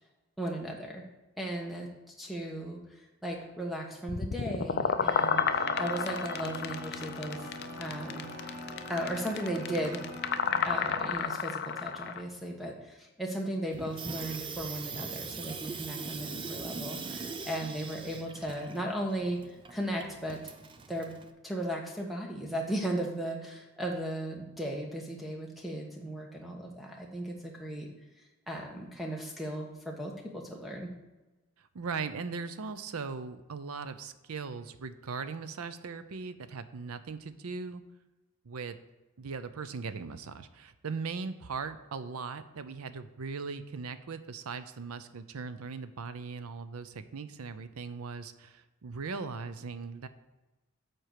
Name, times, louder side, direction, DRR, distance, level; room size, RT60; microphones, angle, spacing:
voice 1, 0.4-1.0 1.4-1.9 2.2-2.8 3.2-7.4 7.8-8.2 8.9-10.1 10.6-19.4 19.7-20.4 20.9-21.1 21.4-27.9 28.5-30.9, right 1 dB, ahead, 0 dB, 1.1 m, -36 dB
sound 1, 4.1-12.2, left 6 dB, 45° left, 0.4 m, -31 dB
sound 2, 5.0-11.1, right 1 dB, 50° right, 2.9 m, -42 dB
Water tap faucet / Sink (filling or washing), 13.7-21.3, right 4 dB, 20° right, 0.4 m, -41 dB
voice 2, 31.6-37.8 38.4-38.8 39.2-50.1, right 5 dB, 80° right, 12 dB, 0.6 m, -39 dB
7.8 x 4.5 x 6.6 m, 1.1 s
head